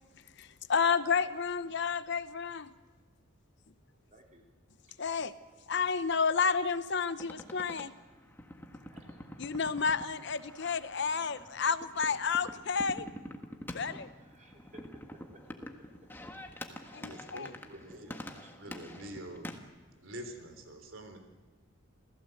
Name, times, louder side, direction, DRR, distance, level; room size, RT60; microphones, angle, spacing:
voice 1, 0.4-2.7 5.0-5.3 5.7-7.9 9.4-13.1 13.7-14.1 16.9-17.5, left 5 dB, 55° left, 0.8 m, -31 dB
voice 2, 4.1-4.4 5.7-5.9 8.9-9.3 14.3-14.8 16.8-17.1 17.6-18.1, right 1 dB, 35° right, 4.0 m, -57 dB
sound 1, 7.2-19.6, left 1 dB, 10° left, 1.5 m, -47 dB
voice 3, 17.0-19.6 20.0-21.2, right 1 dB, 65° right, 3.7 m, -46 dB
28.5 x 16.0 x 7.9 m
head